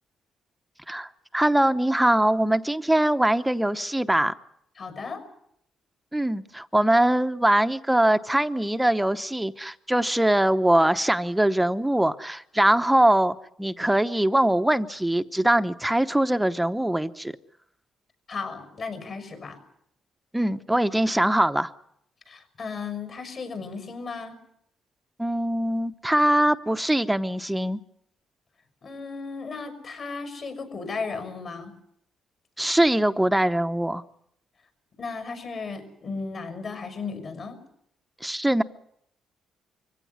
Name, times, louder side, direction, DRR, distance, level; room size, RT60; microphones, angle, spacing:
voice 1, 0.9-4.3 6.1-17.3 20.3-21.7 25.2-27.8 32.6-34.0 38.2-38.6, right 1 dB, 5° right, 10 dB, 0.9 m, -22 dB
voice 2, 4.8-5.2 18.3-19.6 22.3-24.3 28.8-31.7 35.0-37.6, left 4 dB, 50° left, 8 dB, 6.2 m, -35 dB
24.5 x 17.0 x 9.6 m, 0.74 s
cardioid pair, 90°, 0 cm